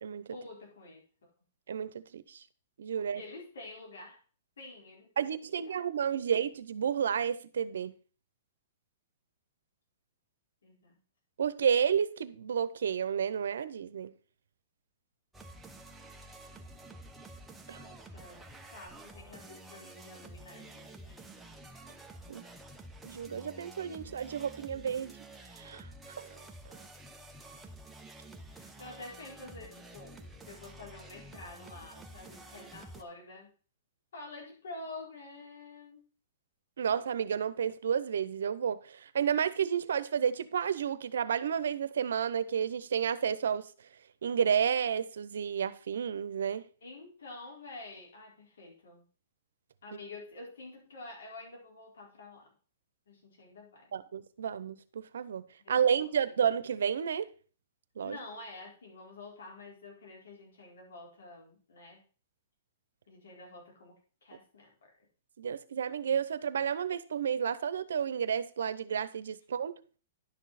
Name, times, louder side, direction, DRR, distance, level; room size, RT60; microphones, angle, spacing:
voice 1, 0.3-1.3 3.1-4.2 4.6-5.1 5.4-5.8 6.2-6.3 10.6-11.0 17.7-18.4 18.7-21.5 28.2-33.5 34.1-36.1 46.8-49.0 49.8-52.5 53.1-53.9 55.6-55.9 56.3-56.4 58.0-62.0 63.1-64.9, left 2 dB, 85° left, 4.4 m, -48 dB
voice 2, 1.7-2.4 2.8-3.2 5.2-7.9 11.4-14.1 17.7-17.8 22.3-22.4 23.0-25.1 25.6-25.9 26.2-26.4 36.8-43.7 44.2-46.6 53.9-57.3 58.0-58.2 65.4-69.7, right 7 dB, 80° right, 0.8 m, -31 dB
sound 1, 15.3-33.0, right 1 dB, 5° right, 0.9 m, -50 dB
11.0 x 6.3 x 4.2 m
hypercardioid pair, 145°, 0 cm